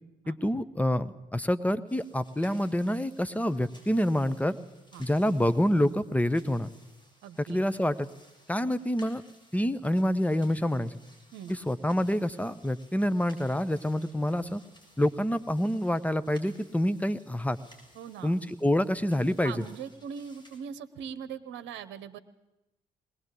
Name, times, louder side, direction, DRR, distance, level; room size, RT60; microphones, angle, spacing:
voice 1, 0.3-4.6 5.0-6.7 7.5-8.1 8.5-9.2 9.5-11.0 11.5-14.6 15.0-17.6 18.2-19.5, left 1 dB, 5° left, 14 dB, 1.2 m, -27 dB
sound 1, 1.9-20.6, equal, 20° left, 7.3 m, -59 dB
voice 2, 7.2-7.6 11.3-11.5 17.9-18.3 19.4-22.2, right 7 dB, 65° right, 11 dB, 1.1 m, -41 dB
20.5 x 19.0 x 8.5 m, 0.96 s
hypercardioid pair, 45°, 20 cm